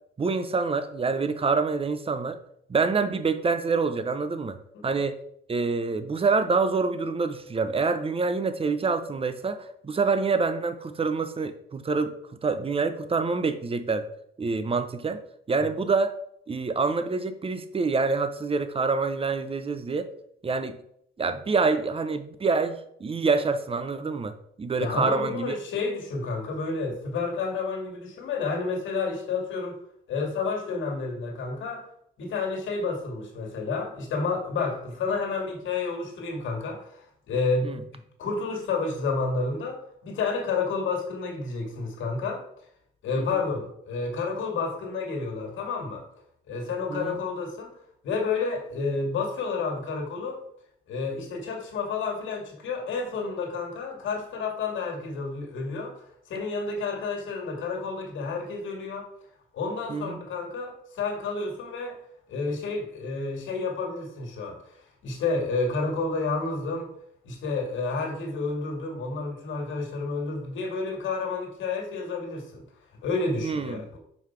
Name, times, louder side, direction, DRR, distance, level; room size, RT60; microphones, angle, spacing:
voice 1, 0.2-2.4 2.7-4.6 4.8-5.2 5.5-12.1 12.4-14.1 14.4-15.2 15.5-16.1 16.5-20.1 20.4-20.8 21.2-24.3 24.6-25.5 37.6-37.8 43.2-43.3 46.9-47.2 59.9-60.2 73.4-73.8, right 4 dB, 30° right, 10 dB, 0.7 m, -26 dB
voice 2, 24.8-29.8 30.1-31.9 32.2-42.4 43.0-46.0 46.5-50.4 50.9-59.1 59.5-62.0 62.3-66.9 67.2-72.6 73.0-74.0, left 4 dB, 75° left, 1 dB, 2.1 m, -30 dB
5.5 x 4.8 x 4.6 m, 0.70 s
cardioid pair, 90°, 20 cm